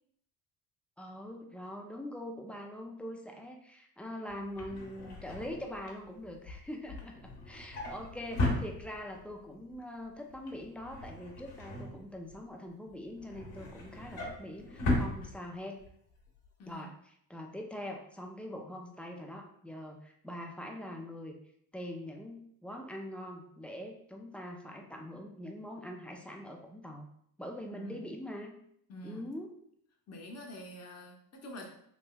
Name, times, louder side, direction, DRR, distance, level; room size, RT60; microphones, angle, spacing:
voice 1, 1.0-15.8 16.7-21.4 21.7-27.1 27.4-28.5 29.0-29.5, left 1 dB, 5° left, 2 dB, 0.3 m, -43 dB
Drawer open or close, 4.3-9.3 9.7-10.0 10.3-12.5 12.9-15.9 16.3-16.5 16.7-16.8, left 1 dB, 60° left, 1.2 m, -37 dB
voice 2, 27.6-28.1 28.9-29.3 30.1-31.7, equal, 35° left, 1 dB, 0.9 m, -47 dB
3.4 x 2.8 x 2.2 m, 0.69 s
supercardioid pair, 70°, 45 cm